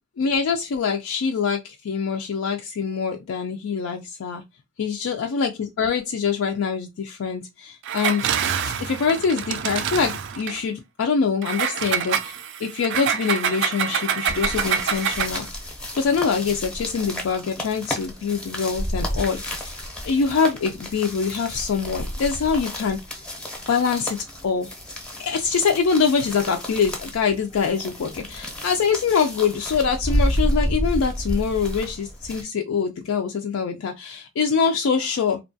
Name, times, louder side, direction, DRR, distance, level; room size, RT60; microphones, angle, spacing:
voice 1, 0.2-4.4 4.8-8.3 8.6-15.5 15.9-19.7 20.0-23.0 23.7-24.2 24.4-24.7 25.2-35.4, left 5 dB, 80° left, 0.4 m, -24 dB
Engine, 7.8-10.6 11.4-15.5, right 8 dB, 60° right, 0.3 m, -26 dB
sound 1, 14.3-32.4, equal, 5° left, 0.7 m, -30 dB
2.8 x 2.2 x 2.6 m
head